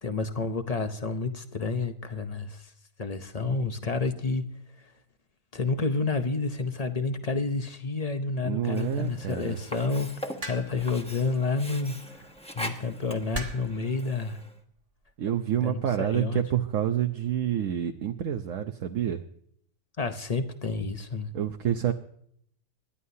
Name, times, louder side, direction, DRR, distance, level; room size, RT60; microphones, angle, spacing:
voice 1, 0.0-2.7 3.0-4.5 5.5-10.1 10.4-12.2 12.6-14.4 15.6-16.4 20.0-21.3, left 3 dB, 45° left, 8 dB, 0.5 m, -29 dB
voice 2, 8.4-9.6 15.2-19.2 21.3-21.9, right 10 dB, 60° right, 6 dB, 0.9 m, -28 dB
Sink (filling or washing), 8.6-14.6, equal, 5° left, 0.9 m, -42 dB
sound 1, 10.4-10.9 12.1-12.4 13.3-13.8 14.8-15.1, right 1 dB, 25° right, 1.4 m, -37 dB
26.5 x 11.0 x 2.8 m, 0.66 s
omnidirectional pair, 1.8 m